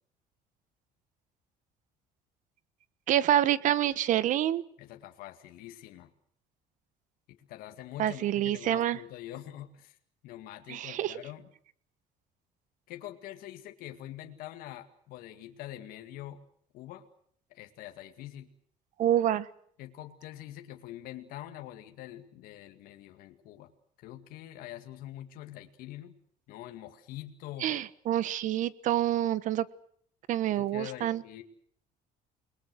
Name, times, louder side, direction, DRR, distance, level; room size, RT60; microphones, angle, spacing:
voice 1, 3.1-4.6 8.0-9.0 10.7-11.1 19.0-19.5 27.6-29.6 30.3-31.2, right 12 dB, 60° right, 17 dB, 1.3 m, -27 dB
voice 2, 4.8-6.1 7.3-10.0 10.2-11.5 12.9-16.4 16.7-17.1 17.5-18.5 19.8-23.7 24.0-26.1 26.5-27.8 30.5-31.4, left 13 dB, 75° left, 5 dB, 2.2 m, -45 dB
29.5 x 21.0 x 6.4 m, 0.63 s
cardioid pair, 135°, 15 cm